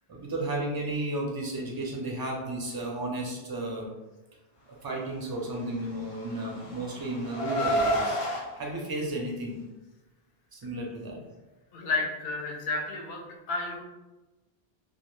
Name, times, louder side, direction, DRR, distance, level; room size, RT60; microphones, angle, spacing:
voice 1, 0.1-3.9 4.8-8.2 8.6-9.6 10.5-11.2, right 1 dB, 40° right, -2 dB, 0.3 m, -33 dB
Car, 5.9-8.4, equal, 45° left, 0.4 m, -29 dB
voice 2, 11.7-13.2 13.5-13.8, left 3 dB, 75° left, 0 dB, 0.8 m, -31 dB
2.2 x 2.1 x 3.0 m, 1.1 s
omnidirectional pair, 1.0 m